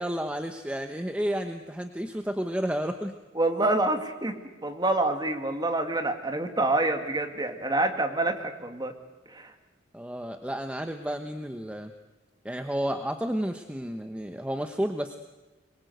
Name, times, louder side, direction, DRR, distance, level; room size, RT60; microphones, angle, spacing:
voice 1, 0.0-3.2 9.9-11.9 12.4-15.2, equal, 5° right, 6 dB, 1.0 m, -31 dB
voice 2, 3.3-8.9 9.3-9.5, right 2 dB, 20° right, 5 dB, 2.3 m, -27 dB
24.5 x 22.5 x 8.1 m, 1.1 s
head